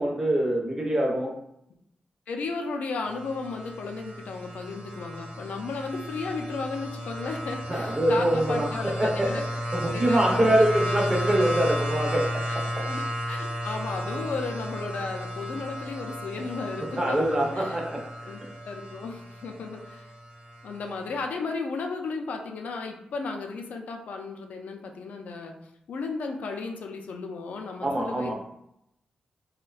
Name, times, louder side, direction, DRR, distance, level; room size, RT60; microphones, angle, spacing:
voice 1, 0.0-1.3 7.7-9.3 9.7-12.8 17.0-18.0 27.8-28.3, right 1 dB, 20° right, -1 dB, 0.5 m, -24 dB
voice 2, 2.3-9.4 9.9-11.0 12.5-17.2 17.5-17.8 18.3-20.1 20.6-25.5 25.9-28.3, left 4 dB, 75° left, 3 dB, 0.3 m, -34 dB
sound 1, 3.0-21.2, equal, 60° right, 0.7 m, -34 dB
2.5 x 2.1 x 2.3 m, 0.77 s
wide cardioid pair, 145°, 3 cm